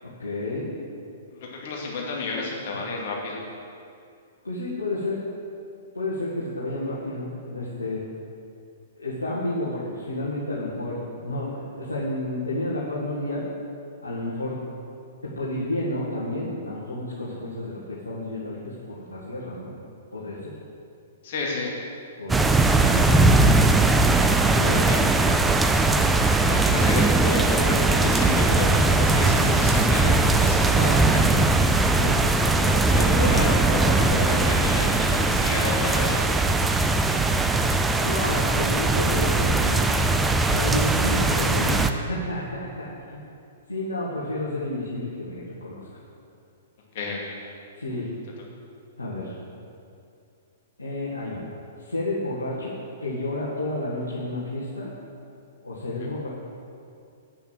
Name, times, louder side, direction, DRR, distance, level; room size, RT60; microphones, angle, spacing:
voice 1, 0.0-0.7 4.4-5.2 5.9-8.0 9.0-13.5 14.0-14.6 15.2-19.7 20.1-20.5 22.2-23.4 24.5-24.9 32.0-32.2 38.0-40.0 40.5-43.2 43.7-45.9 47.7-48.1 49.0-49.4 50.8-51.4 51.8-54.9 55.6-56.3, left 1 dB, 75° left, -8 dB, 2.0 m, -31 dB
voice 2, 1.3-3.4 21.2-21.7 22.7-23.0 24.8-25.0 26.4-31.4 32.4-36.3 46.9-47.2, left 3 dB, 45° left, -2 dB, 2.3 m, -30 dB
sound 1, 22.3-41.9, right 2 dB, 10° right, 0.5 m, -20 dB
8.6 x 7.0 x 7.6 m, 2.5 s
figure-of-eight pair, 110°, 0 cm